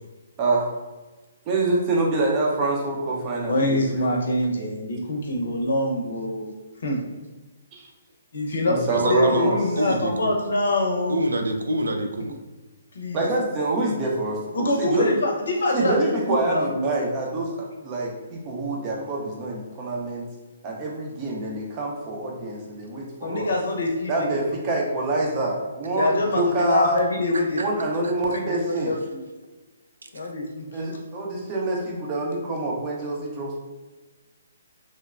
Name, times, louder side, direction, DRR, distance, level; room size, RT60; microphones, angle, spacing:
voice 1, 1.5-4.4 8.7-9.6 13.1-15.1 15.7-20.3 20.6-23.5 24.1-27.0 27.5-28.9 30.7-33.6, right 2 dB, 25° right, -2 dB, 0.6 m, -26 dB
voice 2, 3.5-6.5 6.8-7.0 8.3-11.2 12.2-12.3 12.9-13.2 14.5-16.7 23.2-24.3 25.9-29.2 30.1-30.7, left 2 dB, 70° left, 0 dB, 0.7 m, -25 dB
voice 3, 8.9-9.5 9.8-10.3 11.1-12.3 27.6-27.7 28.0-28.1, right 1 dB, 90° right, 5 dB, 0.4 m, -26 dB
3.1 x 2.1 x 2.4 m, 1.2 s
hypercardioid pair, 150°, 0 cm